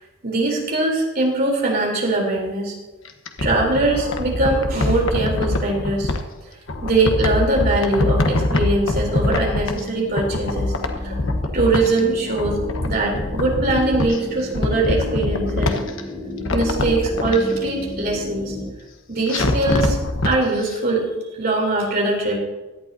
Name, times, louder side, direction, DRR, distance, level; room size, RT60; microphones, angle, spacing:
voice 1, 0.2-2.8 3.4-6.1 6.8-10.7 11.0-11.2 11.5-15.8 16.5-18.6 19.1-20.0 20.2-21.1 21.4-22.4, right 2 dB, 45° right, -2 dB, 3.6 m, -21 dB
sound 1, 3.0-6.2 6.7-9.9 10.1-12.0 12.3-14.2 14.5-16.0 16.4-17.4 19.3-20.3 20.7-20.8, left 2 dB, 65° left, 1.2 m, -23 dB
sound 2, 8.7-18.7, left 2 dB, 25° left, 2.3 m, -34 dB
17.0 x 11.5 x 2.8 m, 1.1 s
head